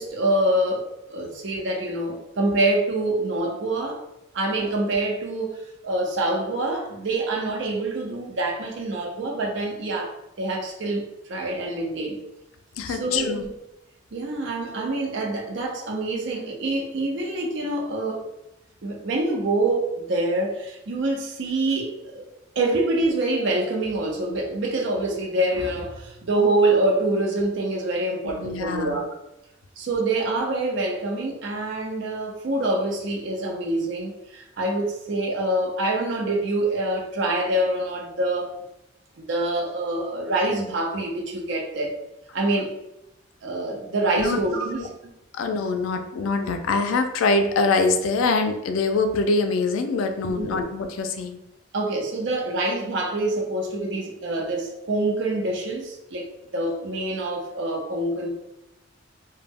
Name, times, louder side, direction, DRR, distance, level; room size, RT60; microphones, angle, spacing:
voice 1, 0.0-4.0 4.3-12.2 12.9-13.5 14.1-18.2 18.8-22.3 22.6-29.1 29.8-38.5 39.2-42.0 42.3-42.8 43.4-44.9 50.3-50.6 51.7-56.3 56.5-58.3, right 2 dB, 65° right, 0 dB, 0.5 m, -26 dB
voice 2, 12.8-13.4 28.2-29.0 44.2-44.4 44.8-44.9 45.3-51.4, left 3 dB, 80° left, 6 dB, 0.3 m, -24 dB
2.1 x 2.0 x 3.4 m, 0.88 s
head